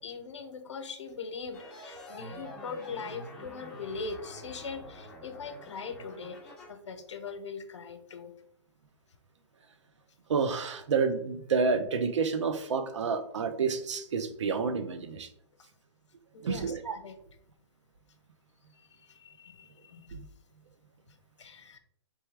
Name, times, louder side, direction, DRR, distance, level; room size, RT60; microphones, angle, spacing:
voice 1, 0.0-8.3 16.3-17.2 18.7-20.1 21.4-21.8, left 4 dB, 80° left, 8 dB, 0.8 m, -41 dB
sound 1, 1.5-6.7, equal, 5° left, 0.8 m, -47 dB
voice 2, 10.3-15.3 16.4-16.9 20.1-20.3, right 5 dB, 80° right, 9 dB, 0.6 m, -29 dB
4.1 x 3.4 x 3.3 m, 0.71 s
hypercardioid pair, 155°, 15 cm